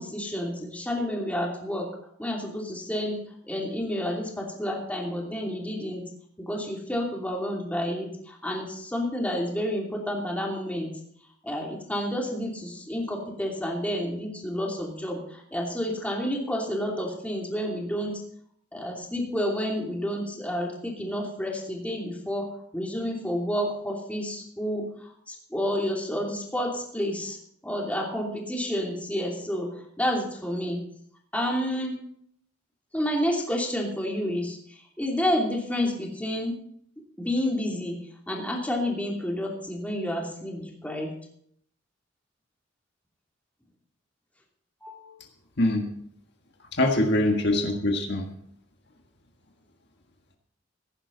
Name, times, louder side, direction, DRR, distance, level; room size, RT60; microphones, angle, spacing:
voice 1, 0.0-1.9 2.2-3.2 3.4-6.0 6.4-10.9 11.4-18.1 18.7-27.4 27.6-30.8 31.3-31.9 32.9-34.6 35.0-36.6 37.2-38.0 38.3-41.1 44.8-45.1 46.8-46.9, equal, 10° left, -1 dB, 2.9 m, -30 dB
voice 2, 46.7-48.3, left 1 dB, 65° left, 3 dB, 1.7 m, -23 dB
16.5 x 11.0 x 4.0 m, 0.66 s
head